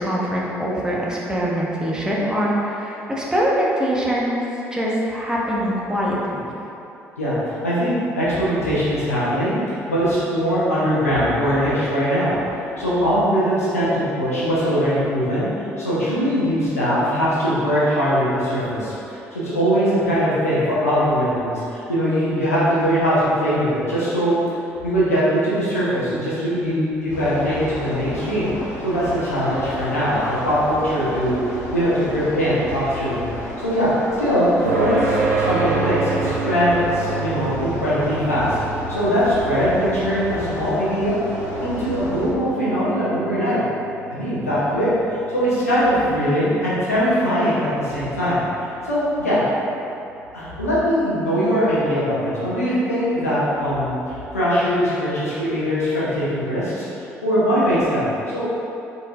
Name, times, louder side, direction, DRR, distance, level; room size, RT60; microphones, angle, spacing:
voice 1, 0.0-4.4 4.7-6.5, equal, 10° right, -5 dB, 0.8 m, -23 dB
voice 2, 7.2-9.6 9.9-12.4 12.8-15.5 15.8-24.4 24.8-28.5 28.8-31.4 31.7-33.2 33.6-33.9 34.2-34.5 34.8-38.6 38.9-41.2 41.6-43.6 44.1-44.9 45.3-48.4 48.9-49.4 50.3-56.9 57.2-58.4, equal, 85° left, -10 dB, 0.8 m, -21 dB
sound 1, 27.1-42.3, left 1 dB, 65° left, 1.0 m, -32 dB
sound 2, 34.7-49.6, right 3 dB, 85° right, 0.4 m, -29 dB
4.0 x 4.0 x 2.5 m, 2.9 s
figure-of-eight pair, 50°, 8 cm